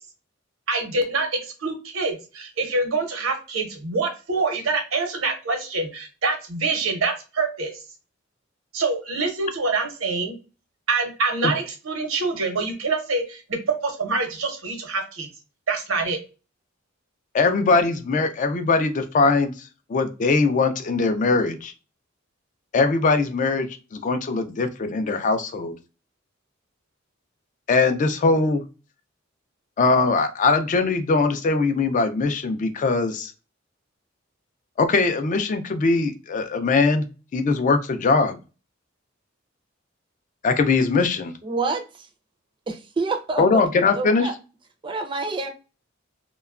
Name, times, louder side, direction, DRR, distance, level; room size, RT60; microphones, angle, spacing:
voice 1, 0.7-7.7 8.7-10.3 10.9-15.3 15.7-16.2, right 3 dB, 85° right, 0.8 m, -25 dB
voice 2, 17.3-21.7 22.7-25.7 27.7-28.6 29.8-33.3 34.8-37.1 37.3-38.4 40.4-41.3 43.4-44.3, left 3 dB, 40° left, 0.3 m, -21 dB
voice 3, 41.4-41.8 42.7-43.6 44.0-44.3 44.8-45.5, right 3 dB, 25° right, 0.4 m, -27 dB
2.8 x 2.2 x 2.3 m
head